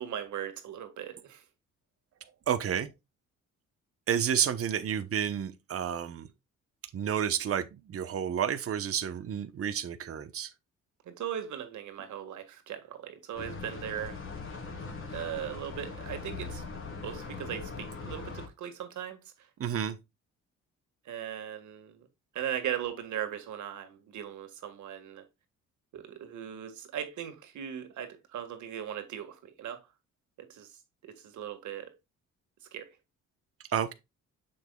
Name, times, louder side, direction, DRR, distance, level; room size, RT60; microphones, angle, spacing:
voice 1, 0.0-1.4 11.1-14.2 15.1-16.6 17.0-19.5 21.1-22.1 22.3-25.2 25.9-29.8 30.4-31.9 32.7-32.9, right 10 dB, 75° right, 1.8 m, -38 dB
voice 2, 2.5-2.9 4.1-6.3 6.9-10.5 19.6-20.0 33.7-33.9, right 9 dB, 50° right, 1.0 m, -30 dB
sound 1, 13.3-18.5, left 4 dB, 45° left, 3.0 m, -40 dB
7.0 x 6.6 x 2.3 m
cardioid pair, 90°, 30 cm